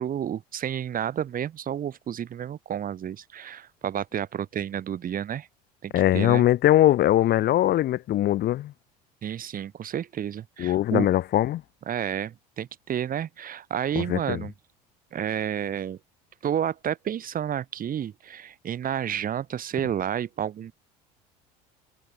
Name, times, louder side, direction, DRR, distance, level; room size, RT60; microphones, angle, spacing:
voice 1, 0.0-5.5 5.8-6.4 9.2-11.1 11.9-14.5 15.1-16.0 16.4-20.7, right 9 dB, 40° right, 7.1 m, -30 dB
voice 2, 5.9-8.7 10.6-11.6 14.0-14.4, left 13 dB, 50° left, 2.6 m, -21 dB
hypercardioid pair, 80°, 21 cm